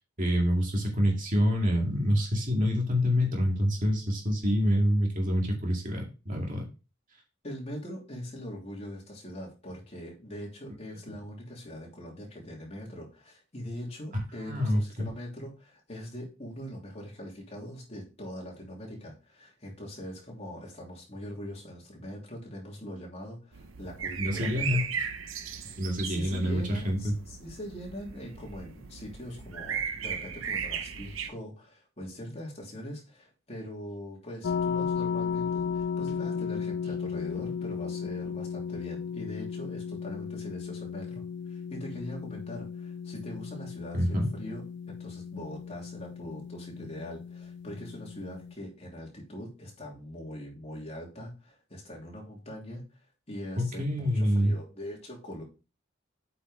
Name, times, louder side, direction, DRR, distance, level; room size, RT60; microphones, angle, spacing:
voice 1, 0.2-6.6 14.5-15.1 24.2-24.9 25.8-27.1 43.9-44.3 53.6-54.5, equal, 40° right, 0 dB, 2.2 m, -26 dB
voice 2, 7.4-24.8 25.6-25.7 26.0-41.2 41.5-44.6 44.9-52.8 53.3-55.4, equal, 30° left, -2 dB, 3.1 m, -42 dB
sound 1, 23.5-31.3, right 7 dB, 75° right, 1.0 m, -37 dB
sound 2, 34.4-48.5, left 6 dB, 60° left, 0.3 m, -35 dB
8.3 x 5.6 x 3.3 m, 0.31 s
head